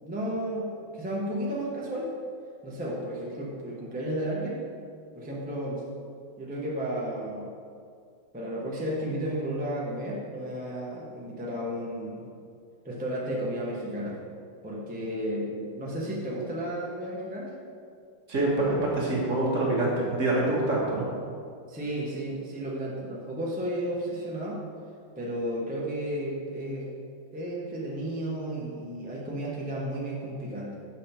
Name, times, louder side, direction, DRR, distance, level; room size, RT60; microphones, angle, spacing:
voice 1, 0.0-2.1 2.6-4.6 5.1-5.8 6.4-7.5 8.3-12.3 12.8-14.3 14.6-17.5 21.7-24.6 25.2-26.9 27.3-30.7, right 1 dB, 10° right, -5 dB, 0.6 m, -33 dB
voice 2, 18.3-21.1, right 2 dB, 40° right, -4 dB, 1.5 m, -25 dB
7.3 x 5.5 x 4.4 m, 2.3 s
omnidirectional pair, 2.2 m